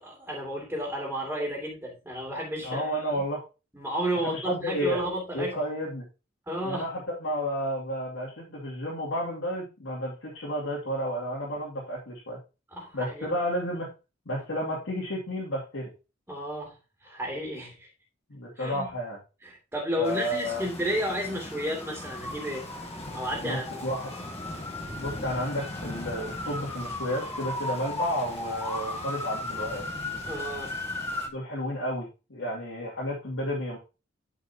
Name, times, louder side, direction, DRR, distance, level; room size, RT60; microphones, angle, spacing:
voice 1, 0.0-3.2 3.7-5.6 6.5-6.9 12.7-13.3 16.3-17.9 18.6-18.9 19.4-22.7 23.1-23.8 30.3-30.8, equal, 10° right, -2 dB, 2.6 m, -32 dB
voice 2, 2.6-3.4 4.2-5.0 5.3-6.0 6.6-12.4 12.9-13.9 14.3-15.9 18.3-19.2 20.0-20.6 23.4-24.1 25.0-29.8 31.3-33.8, equal, 85° left, -5 dB, 2.6 m, -31 dB
Rain, 20.0-31.3, left 2 dB, 35° left, 1.7 m, -43 dB
sound 1, 20.5-31.3, left 2 dB, 15° left, 0.7 m, -37 dB
12.5 x 5.2 x 2.9 m, 0.30 s
head